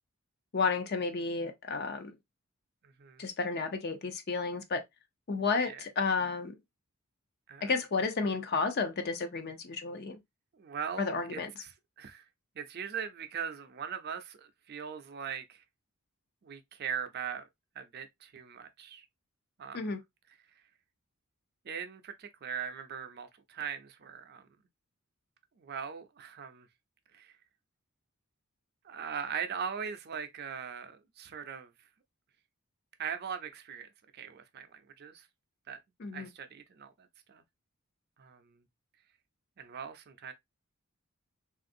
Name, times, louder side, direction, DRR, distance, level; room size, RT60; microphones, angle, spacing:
voice 1, 0.5-2.1 3.2-4.8 5.3-6.6 7.6-10.2 11.0-11.5 19.7-20.0 36.0-36.3, left 4 dB, 50° left, 0.5 m, -32 dB
voice 2, 2.8-3.2 5.7-5.8 7.5-7.7 10.5-11.7 12.0-12.2 12.6-15.6 16.4-17.4 17.8-19.1 19.6-19.9 21.6-24.5 25.6-26.7 27.1-27.3 28.8-31.7 33.0-35.3 35.7-35.8 36.1-37.4 38.2-38.6 39.6-40.3, right 7 dB, 45° right, 0.4 m, -40 dB
3.3 x 2.5 x 2.5 m
head